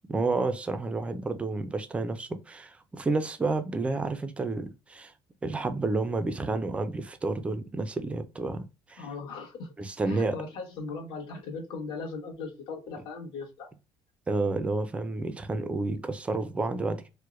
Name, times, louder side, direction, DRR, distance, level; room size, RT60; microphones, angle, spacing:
voice 1, 0.1-5.1 5.4-9.0 9.8-10.4 14.3-17.1, right 3 dB, 10° right, 0.3 m, -30 dB
voice 2, 9.0-9.7 10.0-13.7, left 4 dB, 55° left, 1.3 m, -38 dB
4.5 x 2.1 x 2.4 m
cardioid pair, 175°, 10 cm